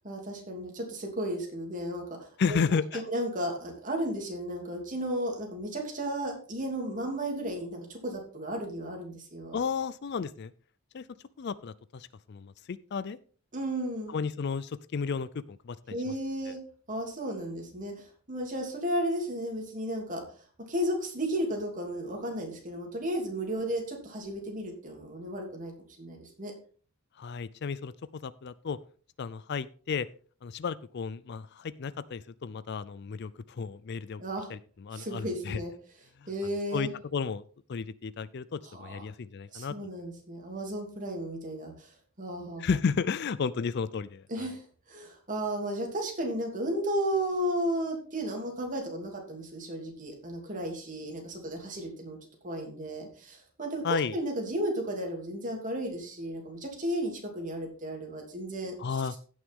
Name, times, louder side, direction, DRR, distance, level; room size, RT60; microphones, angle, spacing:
voice 1, 0.0-2.6 2.9-9.6 13.5-14.2 15.9-16.6 16.9-20.2 20.7-25.7 26.0-26.5 34.2-34.5 34.9-35.7 36.3-36.9 38.6-39.0 39.5-41.9 42.2-42.8 44.3-52.2 52.4-58.8 59.1-59.2, right 1 dB, 35° right, 1 dB, 2.7 m, -34 dB
voice 2, 2.4-3.0 9.5-10.5 10.9-11.0 11.4-13.2 14.1-16.1 16.5-16.6 27.2-28.8 29.2-30.1 30.4-34.2 34.5-35.6 36.4-37.4 37.7-39.7 42.6-44.5 53.8-54.2 58.8-59.2, left 5 dB, 50° left, 18 dB, 0.4 m, -33 dB
16.0 x 6.3 x 3.6 m, 0.41 s
head